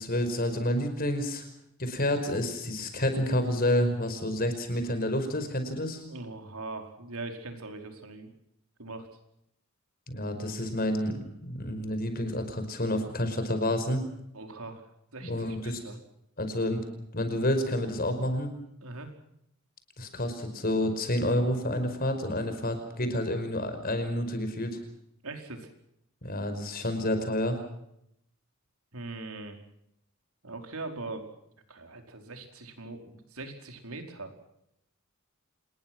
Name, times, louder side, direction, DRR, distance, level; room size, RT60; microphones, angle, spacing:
voice 1, 0.0-1.4 1.8-6.0 10.1-14.0 15.2-15.8 16.4-16.8 17.1-18.5 20.0-24.8 26.2-27.6, left 1 dB, 40° left, 8 dB, 5.2 m, -29 dB
voice 2, 6.1-8.3 8.8-9.1 14.3-16.0 18.8-19.1 25.2-25.7 28.9-29.6 30.4-31.3 31.7-34.3, right 2 dB, 75° right, 5 dB, 4.9 m, -41 dB
27.5 x 21.0 x 6.2 m, 0.78 s
head